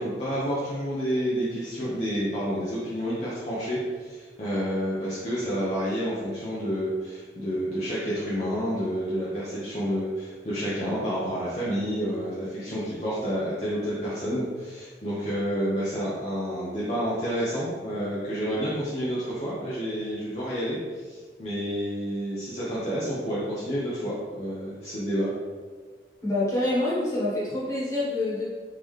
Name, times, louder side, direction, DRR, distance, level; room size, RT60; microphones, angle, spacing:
voice 1, 0.0-25.3, equal, 35° left, -9 dB, 0.6 m, -29 dB
voice 2, 26.2-28.4, left 1 dB, 15° left, -9 dB, 1.2 m, -26 dB
3.7 x 2.8 x 3.2 m, 1.5 s
head